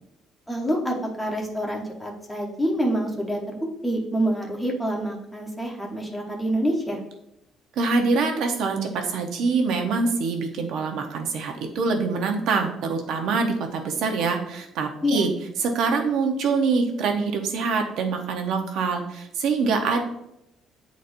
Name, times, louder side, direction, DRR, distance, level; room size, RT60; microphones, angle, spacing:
voice 1, 0.5-7.0 15.0-15.3, equal, 5° left, -1 dB, 0.9 m, -27 dB
voice 2, 7.8-15.3 15.6-20.0, right 4 dB, 70° right, 4 dB, 0.9 m, -24 dB
9.3 x 4.1 x 2.6 m, 0.81 s
cardioid pair, 165°, 0 cm